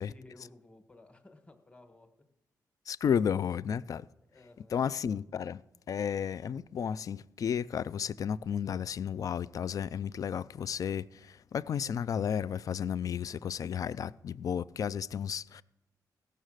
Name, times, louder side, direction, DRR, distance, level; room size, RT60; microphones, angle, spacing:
voice 1, 0.0-2.3 4.3-5.0, left 2 dB, 15° left, 1.4 m, -56 dB
voice 2, 2.9-4.1 4.7-5.6 5.9-15.6, left 8 dB, 55° left, 0.3 m, -33 dB
16.0 x 6.5 x 6.4 m
cardioid pair, 100°, 7 cm